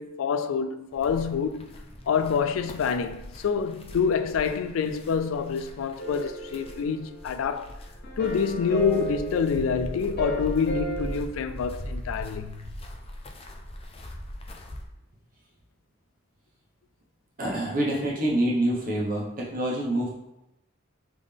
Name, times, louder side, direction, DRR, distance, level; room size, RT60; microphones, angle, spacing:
voice 1, 0.0-1.7 2.1-7.8 8.2-12.7, left 6 dB, 90° left, 0.3 m, -27 dB
sound 1, 0.9-14.9, equal, 30° left, 0.4 m, -40 dB
sound 2, 6.0-7.5 8.0-11.2, right 2 dB, 55° left, 0.9 m, -35 dB
voice 2, 17.4-20.1, right 1 dB, 45° right, 1.2 m, -26 dB
3.6 x 3.6 x 3.5 m
head